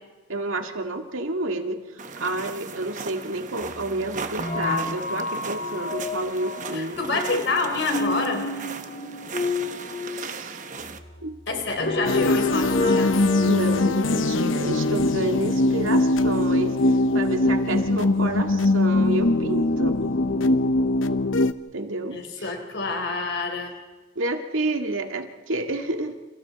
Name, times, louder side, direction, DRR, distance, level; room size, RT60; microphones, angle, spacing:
voice 1, 0.3-7.3 10.1-10.6 11.2-11.4 13.4-20.0 21.7-22.5 24.2-26.2, right 2 dB, 85° right, 4 dB, 2.1 m, -30 dB
sound 1, 2.0-11.0, right 4 dB, 40° right, 1.2 m, -37 dB
sound 2, 3.6-14.1, left 3 dB, 35° left, 2.7 m, -31 dB
voice 2, 6.7-8.5 11.5-13.1 22.1-23.7, left 3 dB, 60° left, 5 dB, 3.8 m, -27 dB
sound 3, 12.0-21.5, left 2 dB, 75° left, 0.9 m, -21 dB
29.5 x 28.0 x 4.2 m, 1.2 s
head